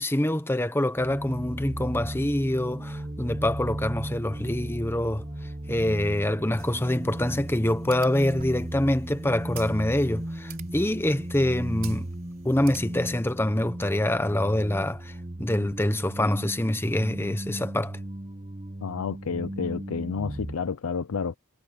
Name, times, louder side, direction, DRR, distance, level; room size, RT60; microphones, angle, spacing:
voice 1, 0.0-5.2 5.7-12.1 12.4-15.1 15.4-18.0, left 1 dB, 10° left, 0.9 m, -25 dB
sound 1, 1.0-20.6, right 1 dB, 30° right, 1.4 m, -36 dB
sound 2, 6.6-13.1, right 8 dB, 45° right, 3.8 m, -49 dB
voice 2, 18.8-21.4, left 5 dB, 85° left, 0.5 m, -30 dB
head